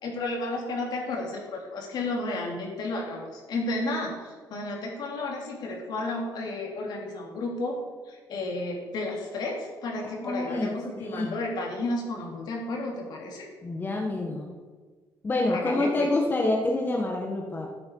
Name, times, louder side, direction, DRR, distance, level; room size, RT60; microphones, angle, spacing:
voice 1, 0.0-7.8 8.0-13.5 15.5-16.1, left 2 dB, 65° left, 0 dB, 2.9 m, -32 dB
voice 2, 10.2-11.3 13.6-14.5 15.2-17.7, left 2 dB, 25° left, 0 dB, 1.5 m, -27 dB
12.5 x 8.5 x 4.7 m, 1.4 s
cardioid pair, 110°, 8 cm